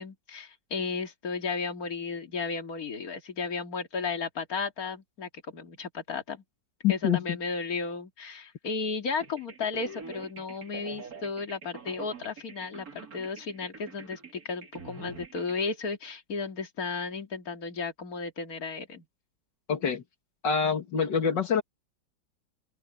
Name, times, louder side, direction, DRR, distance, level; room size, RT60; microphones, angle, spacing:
voice 1, 0.0-6.4 6.9-19.0, left 4 dB, 55° left, 2.7 m, -34 dB
voice 2, 6.8-7.2 19.7-20.0 20.4-21.6, left 7 dB, 85° left, 2.5 m, -25 dB
sound 1, 9.2-15.6, right 3 dB, 55° right, 3.0 m, -45 dB
open air
omnidirectional pair, 1.9 m